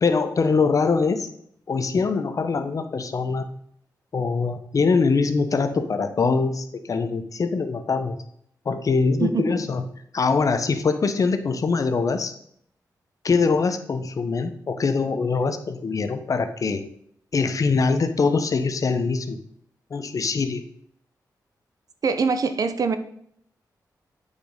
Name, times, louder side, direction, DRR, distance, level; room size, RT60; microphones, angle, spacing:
voice 1, 0.0-1.3 1.7-3.5 4.1-8.2 8.6-9.8 10.1-12.3 13.2-16.8 17.3-19.4 19.9-20.6, left 4 dB, 50° left, 0.9 m, -23 dB
voice 2, 9.2-9.6 22.0-23.0, right 5 dB, 60° right, 0.8 m, -23 dB
8.6 x 5.1 x 5.2 m
cardioid pair, 80°, 7 cm